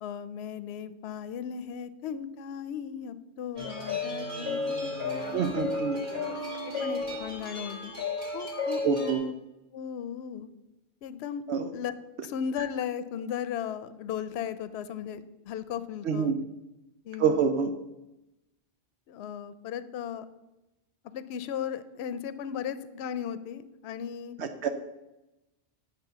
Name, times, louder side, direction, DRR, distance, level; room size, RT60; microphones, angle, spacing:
voice 1, 0.0-5.5 6.8-7.9 8.3-9.3 9.7-10.5 11.0-11.4 11.7-11.9 12.2-16.3 17.0-17.5 19.1-20.3 21.1-24.4, left 8 dB, 75° left, 13 dB, 0.8 m, -36 dB
sound 1, 3.6-9.1, left 3 dB, 45° right, 2.3 m, -33 dB
voice 2, 5.3-6.0 8.8-9.2 11.5-11.7 16.1-16.4 17.2-17.7 24.4-24.7, right 6 dB, 80° right, 7 dB, 0.9 m, -26 dB
9.9 x 4.0 x 6.7 m, 0.97 s
omnidirectional pair, 1.1 m